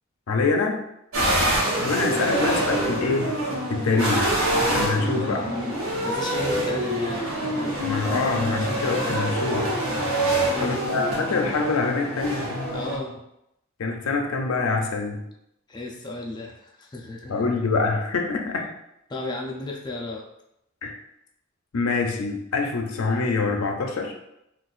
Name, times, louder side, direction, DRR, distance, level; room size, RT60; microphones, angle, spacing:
voice 1, 0.3-0.8 1.8-3.4 3.7-4.4 4.7-5.4 7.8-9.7 10.6-12.5 13.8-15.3 17.3-18.7 20.8-20.9 21.7-24.1, left 4 dB, 90° left, 3 dB, 0.5 m, -25 dB
sound 1, 1.1-13.0, right 1 dB, 85° right, 1.0 m, -26 dB
voice 2, 1.2-1.5 4.9-7.3 7.5-7.8 10.3-10.8 12.7-13.2 15.7-17.4 19.1-20.3, left 2 dB, 20° left, 0 dB, 0.3 m, -34 dB
3.9 x 2.3 x 2.4 m, 0.82 s
head